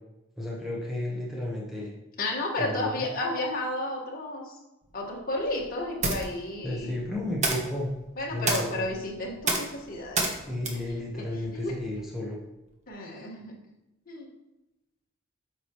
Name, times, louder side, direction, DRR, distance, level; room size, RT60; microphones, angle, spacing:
voice 1, 0.4-1.9 2.6-3.1 6.6-7.9 8.3-8.9 10.5-12.4, left 1 dB, ahead, -5 dB, 1.0 m, -33 dB
voice 2, 2.2-4.6 4.9-7.1 8.2-10.3 11.1-11.2 11.5-11.8 12.9-13.5 14.1-14.3, left 1 dB, 45° left, -2 dB, 1.5 m, -32 dB
sound 1, 4.8-12.1, right 3 dB, 35° right, 1.0 m, -33 dB
8.9 x 5.0 x 3.0 m, 0.94 s
head